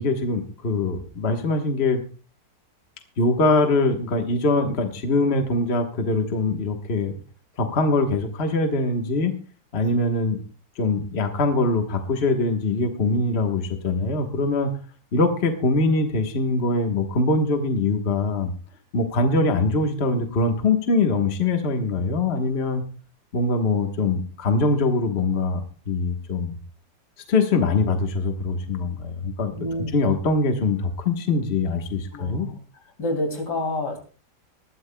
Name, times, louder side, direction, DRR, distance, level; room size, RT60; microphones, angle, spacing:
voice 1, 0.0-2.0 3.2-7.1 7.6-9.3 9.7-10.4 10.8-14.7 15.1-18.5 18.9-22.8 23.3-25.6 25.9-26.6 27.3-29.5 29.9-32.5, left 3 dB, 40° left, 5 dB, 1.4 m, -23 dB
voice 2, 29.5-29.9 32.1-32.6 33.0-34.0, left 1 dB, 80° left, 3 dB, 3.3 m, -28 dB
21.0 x 12.5 x 2.2 m, 0.38 s
omnidirectional pair, 1.8 m